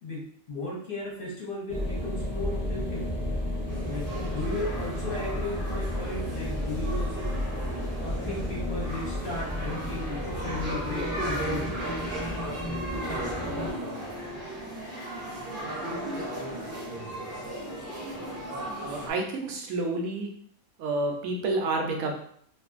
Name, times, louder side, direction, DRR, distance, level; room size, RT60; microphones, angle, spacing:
voice 1, 0.0-3.2 3.8-7.3 8.0-11.8, left 2 dB, 50° left, -5 dB, 0.8 m, -36 dB
sound 1, 1.7-13.7, left 1 dB, 10° right, 0.6 m, -33 dB
sound 2, 3.7-19.1, right 1 dB, 45° right, 0.8 m, -36 dB
voice 2, 18.8-20.3 20.8-22.1, right 2 dB, 75° right, 1 dB, 1.0 m, -29 dB
2.5 x 2.4 x 2.4 m, 0.63 s
omnidirectional pair, 1.5 m